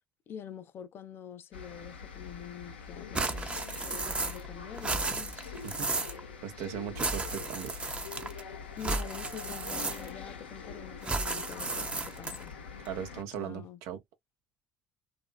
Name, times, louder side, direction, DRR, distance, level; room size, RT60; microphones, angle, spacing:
voice 1, 0.3-5.4 8.8-12.5 13.2-13.8, left 9 dB, 45° left, 0.5 m, -46 dB
sound 1, 1.5-13.2, left 5 dB, 80° left, 0.7 m, -44 dB
sound 2, 3.1-4.5 4.7-6.2 7.0-8.4 8.8-10.3 11.0-12.5, right 3 dB, 20° right, 0.7 m, -34 dB
voice 2, 5.6-6.0 6.4-7.8 12.9-14.0, right 9 dB, 60° right, 0.8 m, -38 dB
2.8 x 2.5 x 2.3 m
figure-of-eight pair, 55°, 5 cm